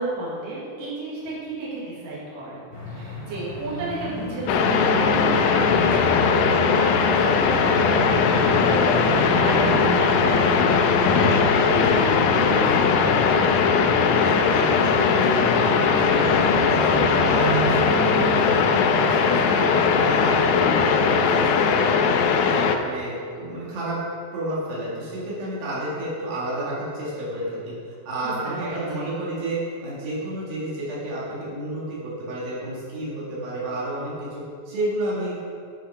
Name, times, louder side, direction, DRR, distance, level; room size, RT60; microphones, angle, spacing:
voice 1, 0.0-2.7 2.9-13.4 28.2-28.3 28.6-29.2, right 2 dB, 70° right, -8 dB, 3.7 m, -32 dB
sound 1, 2.7-21.2, right 1 dB, 20° left, 1.0 m, -33 dB
sound 2, 4.5-22.8, left 5 dB, 80° left, 1.9 m, -19 dB
voice 2, 14.1-24.0 24.3-35.4, right 1 dB, 85° right, -7 dB, 3.9 m, -31 dB
10.0 x 5.9 x 5.5 m, 2.4 s
omnidirectional pair, 4.1 m